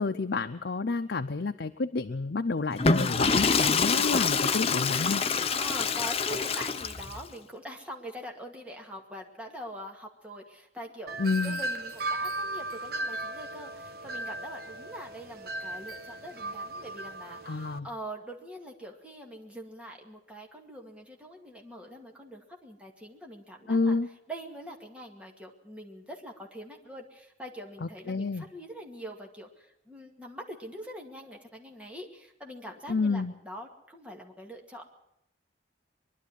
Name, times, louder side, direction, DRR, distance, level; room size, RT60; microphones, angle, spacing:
voice 1, 0.0-5.2 11.2-11.6 17.5-17.9 23.7-24.1 27.8-28.5 32.9-33.3, left 3 dB, 75° left, 7 dB, 0.7 m, -29 dB
Water / Toilet flush, 2.7-7.2, left 5 dB, 35° left, 0.7 m, -26 dB
voice 2, 5.5-11.2 11.4-24.0 24.3-34.8, equal, 5° right, 0 dB, 2.2 m, -43 dB
Wind chime, 11.1-17.8, right 2 dB, 60° right, 1.0 m, -36 dB
22.5 x 11.5 x 9.9 m, 0.83 s
head